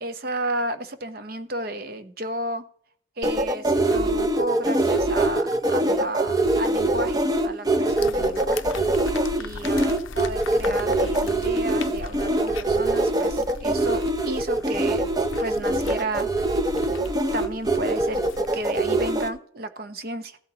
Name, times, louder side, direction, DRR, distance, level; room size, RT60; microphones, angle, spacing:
voice 1, 0.0-2.6 3.2-8.7 9.4-15.1 15.4-16.3 17.3-18.2 18.5-20.4, right 1 dB, 50° right, 9 dB, 0.8 m, -32 dB
sound 1, 3.2-19.3, right 1 dB, 20° right, 0.6 m, -23 dB
sound 2, 7.9-19.1, left 4 dB, 85° left, 0.5 m, -38 dB
15.5 x 7.9 x 2.9 m, 0.62 s
head